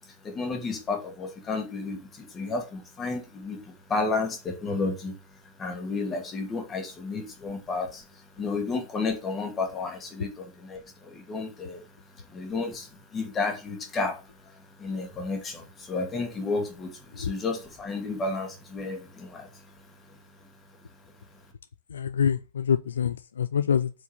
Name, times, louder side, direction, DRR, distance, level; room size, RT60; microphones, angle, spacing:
voice 1, 0.1-5.2 5.6-11.8 12.3-14.2 14.5-19.6 20.1-20.2, left 3 dB, 25° left, 2.5 m, -32 dB
voice 2, 21.9-23.9, left 7 dB, 70° left, 0.4 m, -26 dB
7.8 x 4.8 x 7.3 m
figure-of-eight pair, 90°, 0 cm